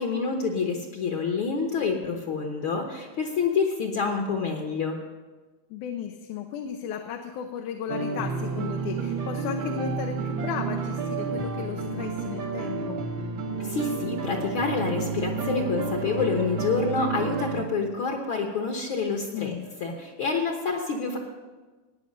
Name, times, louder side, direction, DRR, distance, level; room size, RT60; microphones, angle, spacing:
voice 1, 0.0-5.0 13.6-19.5 19.8-21.2, left 4 dB, 55° left, 2 dB, 1.6 m, -27 dB
voice 2, 5.7-13.0 19.3-19.7, left 8 dB, 85° left, 4 dB, 2.3 m, -34 dB
sound 1, 7.9-17.6, right 4 dB, 60° right, 1.3 m, -31 dB
16.5 x 9.7 x 5.3 m, 1.3 s
omnidirectional pair, 3.5 m